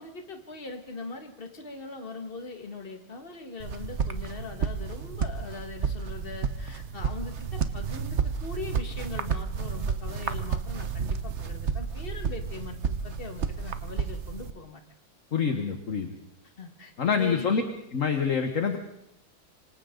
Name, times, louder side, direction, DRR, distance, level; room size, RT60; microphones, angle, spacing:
voice 1, 0.0-14.8 16.6-17.7, left 3 dB, 30° left, 5 dB, 2.0 m, -41 dB
sound 1, 3.6-14.5, right 6 dB, 50° right, 1.0 m, -31 dB
voice 2, 15.3-16.1 17.0-17.6 17.9-18.8, left 6 dB, 45° left, 6 dB, 1.6 m, -26 dB
26.5 x 25.0 x 3.9 m, 0.79 s
omnidirectional pair, 2.1 m